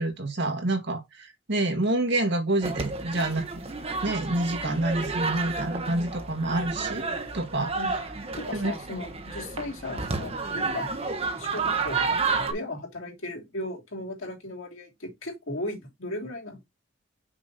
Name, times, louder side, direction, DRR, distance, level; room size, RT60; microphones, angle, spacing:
voice 1, 0.0-3.5 4.0-7.1 7.3-7.7 8.5-8.7, right 2 dB, 55° right, 1.8 m, -27 dB
sound 1, 2.6-12.5, right 4 dB, 30° right, 1.0 m, -31 dB
voice 2, 8.4-11.0 11.4-16.6, left 1 dB, 75° left, 3.0 m, -36 dB
6.1 x 4.9 x 4.1 m
head